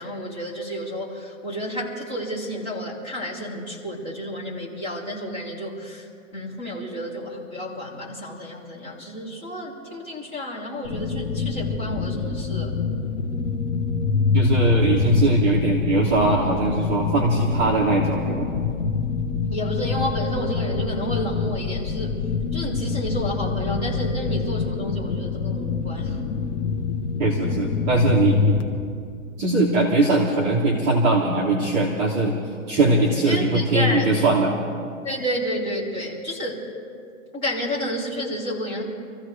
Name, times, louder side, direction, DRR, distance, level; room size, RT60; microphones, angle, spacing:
voice 1, 0.0-6.1 6.3-12.7 19.5-22.2 22.5-26.2 33.3-34.0 35.0-36.6 37.3-38.8, equal, 20° left, -6 dB, 2.9 m, -30 dB
sound 1, 10.8-28.6, left 5 dB, 60° left, 1.4 m, -25 dB
voice 2, 14.3-18.5 27.2-28.5 29.4-32.3 32.7-34.5, right 2 dB, 15° right, -6 dB, 1.0 m, -20 dB
27.0 x 15.0 x 3.3 m, 2.2 s
hypercardioid pair, 175°, 41 cm